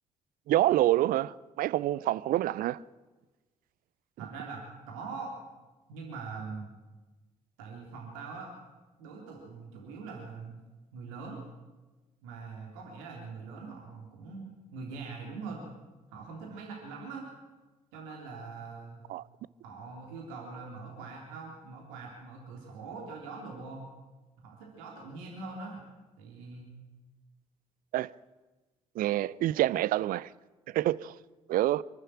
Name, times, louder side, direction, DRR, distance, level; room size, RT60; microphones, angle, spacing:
voice 1, 0.5-2.8 19.1-19.2 27.9-28.1 29.0-30.3 30.7-31.1 31.5-31.8, right 14 dB, 55° right, 0.6 m, -27 dB
voice 2, 4.2-5.3 5.9-6.7 7.6-8.5 9.0-10.6 10.9-11.4 12.2-15.7 16.1-17.3 17.9-19.0 19.6-23.8 24.4-25.8 26.2-26.7, right 4 dB, 70° right, 3.4 m, -42 dB
26.5 x 12.5 x 8.9 m
figure-of-eight pair, 45°, 17 cm